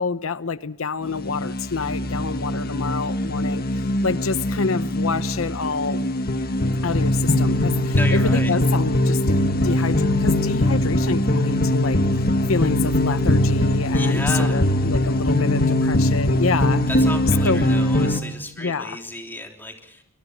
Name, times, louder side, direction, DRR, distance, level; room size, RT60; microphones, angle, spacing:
voice 1, 0.0-6.1 6.8-16.8 17.4-17.6 18.6-19.0, left 4 dB, 90° left, 0.8 m, -27 dB
sound 1, 1.1-18.2, left 1 dB, 50° left, 1.7 m, -21 dB
voice 2, 7.9-8.5 13.9-14.6 16.9-20.0, left 1 dB, 10° left, 3.3 m, -33 dB
24.0 x 22.5 x 6.2 m
head